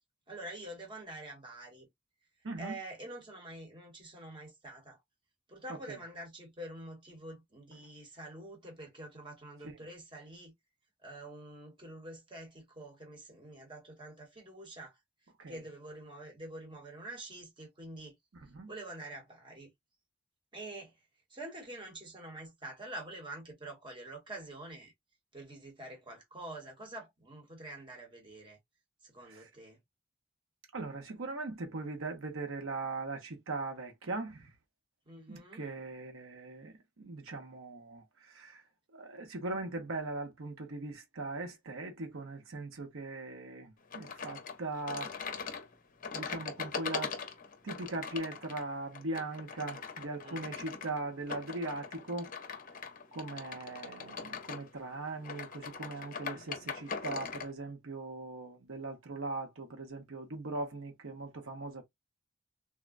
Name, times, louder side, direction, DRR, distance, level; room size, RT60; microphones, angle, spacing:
voice 1, 0.3-1.9 2.6-5.0 5.5-10.5 11.0-15.0 15.5-18.1 18.7-19.7 20.5-20.9 21.3-24.9 25.3-28.6 29.0-29.8 35.1-35.7 50.2-50.6 56.3-56.7, right 1 dB, 25° right, 1.1 m, -46 dB
voice 2, 30.7-34.5 35.3-38.6 38.9-45.2 46.1-47.1 47.6-52.3 53.1-61.8, right 2 dB, 70° right, 0.9 m, -40 dB
sound 1, 43.9-57.5, left 5 dB, 40° left, 0.6 m, -41 dB
3.5 x 2.2 x 2.4 m
head